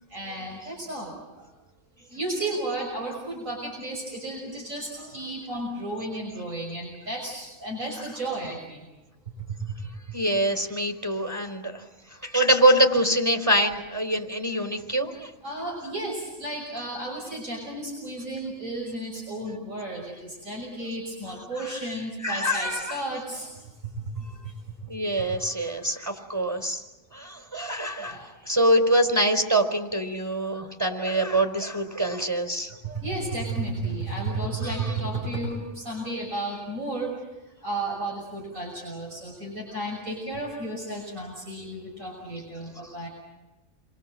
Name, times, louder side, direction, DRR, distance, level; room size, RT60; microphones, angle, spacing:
voice 1, 0.1-1.5 2.1-8.8 15.4-23.5 25.1-25.4 28.0-28.3 32.8-37.1 37.6-43.1, right 2 dB, 85° right, -1 dB, 6.7 m, -33 dB
voice 2, 10.1-11.8 12.2-15.3 22.2-23.0 24.9-26.8 27.1-32.8 34.6-35.0, right 1 dB, 10° right, 5 dB, 4.2 m, -24 dB
29.5 x 23.5 x 7.7 m, 1.1 s
omnidirectional pair, 1.4 m